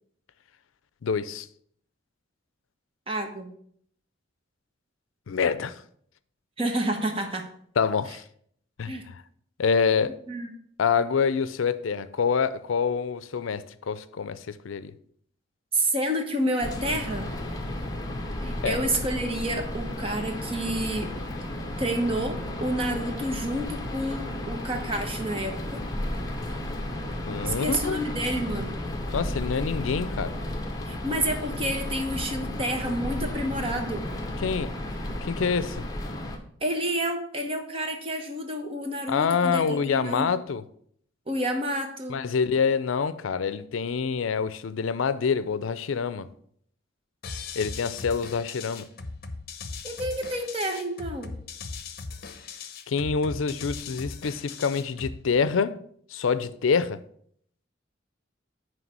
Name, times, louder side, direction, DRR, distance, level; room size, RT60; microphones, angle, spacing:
voice 1, 1.0-1.5 5.3-5.8 7.8-8.2 8.8-9.2 9.6-10.1 10.8-14.9 18.6-18.8 27.3-28.0 29.1-30.3 34.4-34.7 35.2-35.8 39.1-40.6 42.1-46.3 47.6-48.9 52.9-55.8 56.1-57.0, left 5 dB, 90° left, 0.5 m, -26 dB
voice 2, 3.1-3.5 6.6-7.5 8.9-9.0 10.3-10.5 15.7-17.3 18.4-21.1 21.8-25.8 27.4-28.8 30.9-34.1 36.6-40.3 41.3-42.2 49.8-51.3, right 1 dB, 30° right, 1.0 m, -29 dB
sound 1, 16.6-36.4, left 1 dB, 20° left, 0.9 m, -33 dB
sound 2, 47.2-55.2, left 4 dB, 50° left, 0.7 m, -39 dB
9.3 x 3.3 x 6.1 m
head